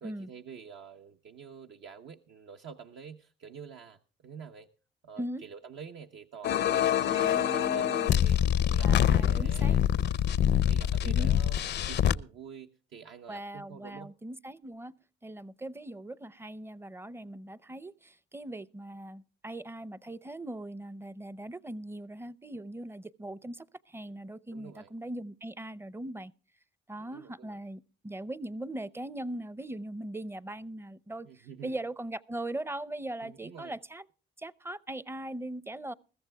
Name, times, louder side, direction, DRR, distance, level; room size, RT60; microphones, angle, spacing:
voice 1, 0.0-4.7 5.0-8.4 8.7-9.8 10.5-14.1 24.2-24.9 27.0-27.6 31.2-31.8 33.2-33.7, right 6 dB, 70° right, 0.8 m, -48 dB
sound 1, 6.4-12.2, left 10 dB, 60° left, 0.5 m, -25 dB
voice 2, 7.1-8.1 8.8-9.8 11.0-11.3 13.3-14.9 15.2-26.3 26.9-34.1 34.4-35.9, right 1 dB, 10° right, 0.6 m, -40 dB
21.5 x 14.5 x 2.2 m
cardioid pair, 90°, 20 cm